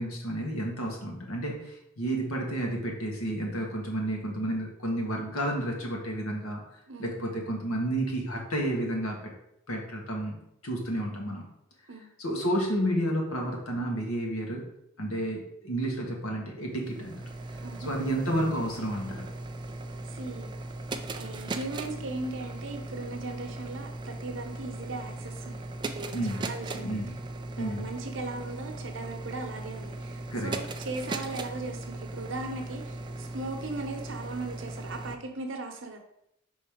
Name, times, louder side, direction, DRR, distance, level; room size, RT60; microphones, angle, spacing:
voice 1, 0.0-6.6 7.0-9.2 9.7-10.4 10.6-11.5 12.2-14.7 15.0-17.3 17.8-19.3 26.1-26.5 26.7-27.2 27.6-27.9 30.3-30.6, right 1 dB, 85° left, 0 dB, 1.7 m, -31 dB
voice 2, 6.9-7.4 11.9-12.1 17.6-17.9 20.1-20.5 21.1-27.0 27.6-36.0, right 2 dB, 60° right, 4 dB, 0.9 m, -38 dB
sound 1, 16.7-35.2, right 2 dB, 20° right, 0.3 m, -38 dB
5.4 x 3.9 x 5.0 m, 0.78 s
head